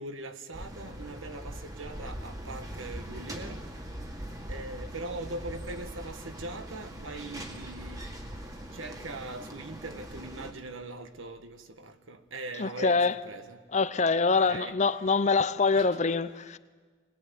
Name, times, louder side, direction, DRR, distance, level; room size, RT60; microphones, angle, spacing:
voice 1, 0.0-3.6 4.5-8.1 8.7-13.6 14.3-14.7 15.7-16.0, right 2 dB, 75° right, 1.5 m, -41 dB
sound 1, 0.5-10.5, equal, 20° right, 2.0 m, -41 dB
voice 2, 12.6-13.1 13.7-16.6, left 4 dB, 35° left, 0.6 m, -25 dB
21.0 x 19.5 x 9.3 m
head